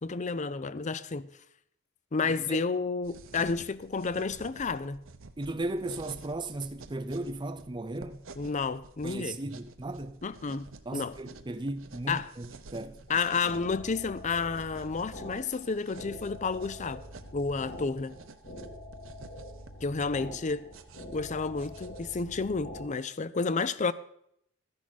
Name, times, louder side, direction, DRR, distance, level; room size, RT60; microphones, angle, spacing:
voice 1, 0.0-1.3 2.1-5.0 8.4-9.4 10.2-11.1 12.1-12.3 13.1-17.0 17.3-18.2 19.8-20.7 21.1-23.9, left 4 dB, 30° left, 0.5 m, -31 dB
voice 2, 2.2-2.6 5.4-8.2 9.0-10.2 10.9-13.0, right 2 dB, 20° right, 0.5 m, -36 dB
sound 1, 3.0-22.6, right 3 dB, 60° right, 0.9 m, -51 dB
sound 2, 13.1-22.9, left 1 dB, 60° left, 2.8 m, -45 dB
13.5 x 10.5 x 4.2 m
head